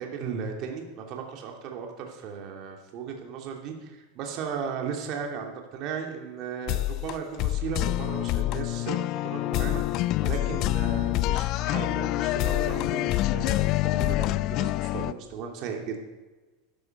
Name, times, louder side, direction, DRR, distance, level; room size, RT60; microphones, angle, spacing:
voice 1, 0.0-16.0, right 6 dB, 50° right, 2 dB, 2.8 m, -36 dB
sound 1, 6.7-15.1, left 16 dB, 50° left, 0.4 m, -26 dB
12.0 x 11.0 x 6.7 m, 1.2 s
supercardioid pair, 115°, 0 cm